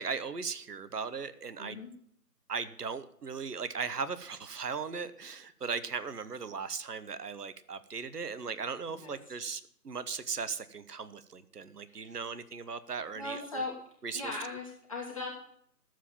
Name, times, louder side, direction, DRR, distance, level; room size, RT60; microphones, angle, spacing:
voice 1, 0.0-1.8 2.5-13.4 14.0-14.2, right 5 dB, 65° right, 13 dB, 1.1 m, -38 dB
voice 2, 1.6-1.9 8.9-9.3 11.9-12.2 13.1-13.8 14.1-15.4, left 2 dB, 20° left, -3 dB, 1.5 m, -39 dB
12.5 x 7.7 x 7.0 m, 0.66 s
figure-of-eight pair, 160°, 49 cm